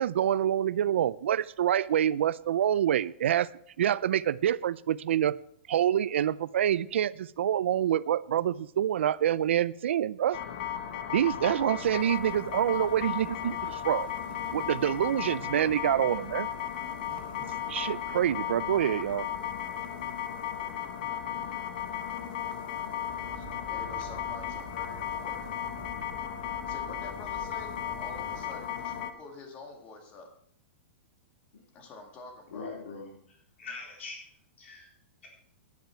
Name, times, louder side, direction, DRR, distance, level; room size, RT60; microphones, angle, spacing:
voice 1, 0.0-3.5 3.8-5.4 5.7-10.4 11.1-14.1 14.5-16.5 17.7-19.3, right 10 dB, 75° right, 19 dB, 0.4 m, -26 dB
sound 1, 10.3-29.1, left 9 dB, 45° left, 1.1 m, -35 dB
sound 2, 12.8-25.4, right 5 dB, 50° right, 2.7 m, -55 dB
sound 3, 23.1-28.4, right 2 dB, 5° right, 3.5 m, -48 dB
voice 2, 23.4-25.5 26.7-30.3 31.7-32.7, left 3 dB, 20° left, 3 dB, 1.9 m, -47 dB
voice 3, 32.5-34.3 34.6-34.9, left 4 dB, 90° left, -1 dB, 4.0 m, -42 dB
12.0 x 10.5 x 4.5 m, 0.64 s
supercardioid pair, 175°, 7 cm